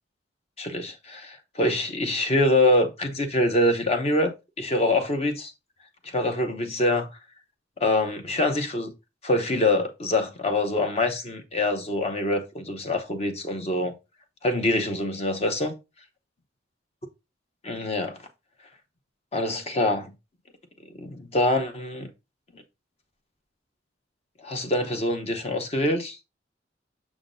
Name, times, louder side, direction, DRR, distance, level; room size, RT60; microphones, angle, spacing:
voice 1, 0.6-4.3 4.6-5.5 6.0-7.1 7.8-8.9 9.2-13.9 14.4-15.8 17.6-18.2 19.3-20.1 20.9-22.1 24.4-26.2, left 1 dB, 35° left, 0.8 m, -25 dB
6.1 x 5.8 x 2.6 m
head